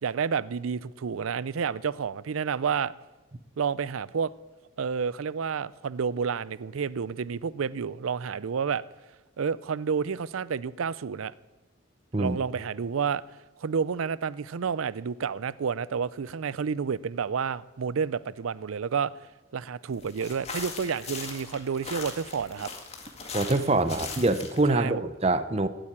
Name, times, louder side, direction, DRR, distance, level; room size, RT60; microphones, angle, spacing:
voice 1, 0.0-2.9 3.6-4.3 4.8-8.8 9.4-11.3 12.2-19.3 19.5-22.7 24.7-25.0, right 6 dB, 85° right, 0.5 m, -30 dB
sound 1, 20.0-24.7, left 4 dB, 30° left, 2.1 m, -39 dB
voice 2, 23.3-25.7, right 2 dB, 30° right, 0.7 m, -25 dB
16.0 x 8.9 x 9.8 m
head